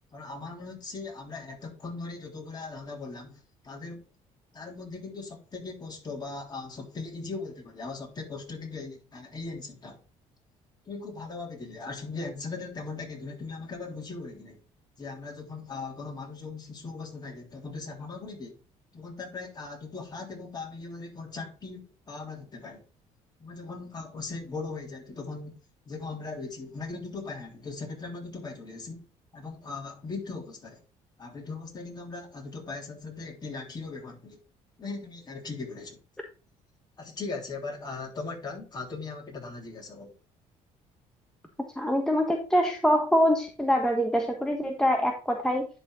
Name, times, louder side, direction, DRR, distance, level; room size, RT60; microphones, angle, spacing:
voice 1, 0.1-4.0 4.5-10.0 10.9-14.6 15.0-18.6 18.9-22.8 23.4-25.5 25.9-29.0 29.3-30.8 31.2-34.4 34.8-36.0 37.0-40.1, left 3 dB, 30° left, 3.4 m, -39 dB
voice 2, 41.8-45.7, equal, 5° left, 1.2 m, -24 dB
10.5 x 4.3 x 3.9 m
cardioid pair, 100°, 14 cm